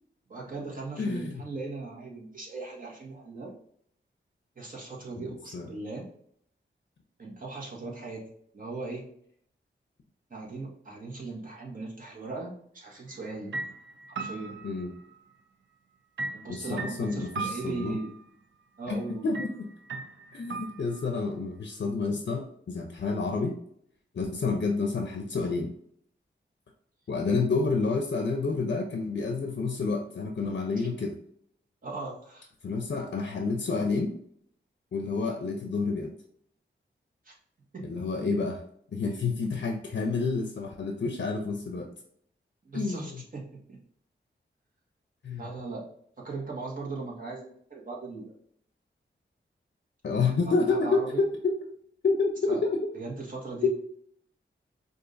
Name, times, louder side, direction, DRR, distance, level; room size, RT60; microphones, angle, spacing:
voice 1, 0.3-3.5 4.5-6.1 7.2-8.2 8.5-9.1 10.3-13.5 14.1-14.6 16.3-18.1 18.8-19.3 30.7-30.9 31.8-32.5 37.2-37.3 37.7-37.9 42.6-43.4 43.7-43.8 45.4-45.9 46.2-48.4 50.4-51.2 52.5-52.6 52.9-53.7, right 3 dB, 45° right, -3 dB, 1.4 m, -38 dB
voice 2, 1.0-1.4 5.2-5.3 5.5-5.7 14.6-14.9 16.5-18.0 18.9-19.7 20.3-23.6 24.1-25.7 27.1-31.2 32.6-34.2 34.9-36.1 37.8-38.6 38.9-41.9 42.7-43.2 45.2-45.5 50.0-51.6 52.0-52.8 53.6-53.7, left 4 dB, 60° left, 3 dB, 0.6 m, -29 dB
sound 1, 13.1-13.3 13.5-15.4 16.2-18.2 19.3-19.5 19.9-21.2, right 3 dB, 70° right, 0.5 m, -38 dB
4.9 x 2.6 x 2.5 m, 0.66 s
wide cardioid pair, 90°, 20 cm